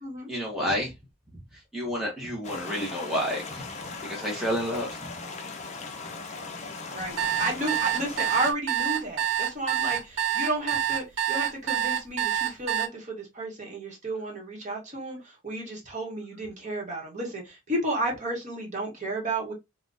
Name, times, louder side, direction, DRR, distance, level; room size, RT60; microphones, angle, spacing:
voice 1, 0.3-0.9 1.5-3.7 4.0-5.0, equal, ahead, 0.7 m, -30 dB
sound 1, 2.4-8.5, left 4 dB, 30° left, 0.4 m, -38 dB
voice 2, 6.9-19.5, right 1 dB, 35° right, 0.9 m, -32 dB
sound 2, 7.0-12.9, right 10 dB, 60° right, 0.4 m, -27 dB
3.7 x 2.1 x 2.4 m
head